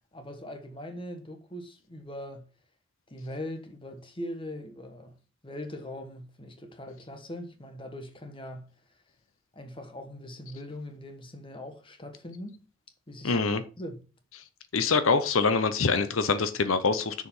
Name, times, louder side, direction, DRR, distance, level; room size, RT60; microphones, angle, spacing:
voice 1, 0.1-2.5 3.1-5.2 5.4-8.8 9.5-12.6 13.1-14.1, left 1 dB, 25° left, 1.2 m, -41 dB
voice 2, 13.2-13.6 14.7-17.3, left 4 dB, 80° left, 0.8 m, -25 dB
6.6 x 5.0 x 5.5 m
head